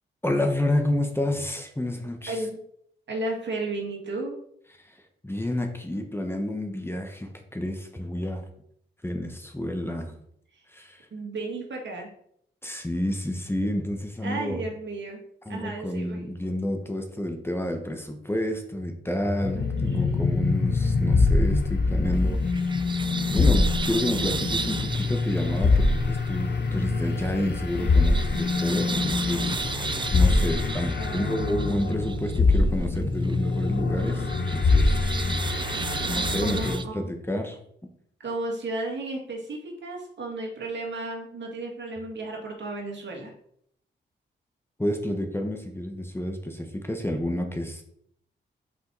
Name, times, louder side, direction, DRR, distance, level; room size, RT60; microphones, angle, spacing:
voice 1, 0.2-2.4 4.8-5.0 5.2-8.4 9.0-10.1 10.7-11.1 12.6-14.6 15.4-22.4 23.3-29.7 30.1-34.9 36.1-37.6 44.8-47.8, left 1 dB, 10° left, 4 dB, 1.2 m, -29 dB
voice 2, 2.3-2.6 3.1-4.4 10.0-10.1 11.1-12.1 14.2-15.2 15.5-16.2 19.6-20.2 31.0-31.4 36.3-37.1 38.2-43.3, right 2 dB, 65° right, 0 dB, 2.0 m, -34 dB
sound 1, 19.4-36.8, left 3 dB, 60° left, 1.0 m, -24 dB
sound 2, 22.1-36.8, right 4 dB, 25° right, 0.5 m, -35 dB
5.8 x 5.0 x 4.0 m, 0.69 s
cardioid pair, 55°, 20 cm